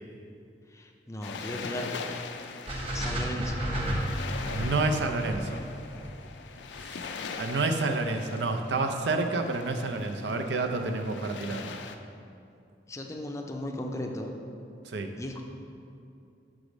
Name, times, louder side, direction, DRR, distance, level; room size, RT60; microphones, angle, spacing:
voice 1, 0.7-1.9 2.9-3.6 12.9-14.3 15.2-15.4, left 1 dB, 15° left, 3 dB, 0.5 m, -36 dB
sound 1, 1.2-12.0, left 5 dB, 90° left, 0.4 m, -41 dB
sound 2, 2.7-6.8, equal, 30° right, 1.0 m, -32 dB
voice 2, 4.5-5.6 6.8-7.1 7.4-11.7 14.9-15.1, right 3 dB, 80° right, 5 dB, 0.5 m, -29 dB
6.1 x 4.9 x 5.2 m, 2.5 s
head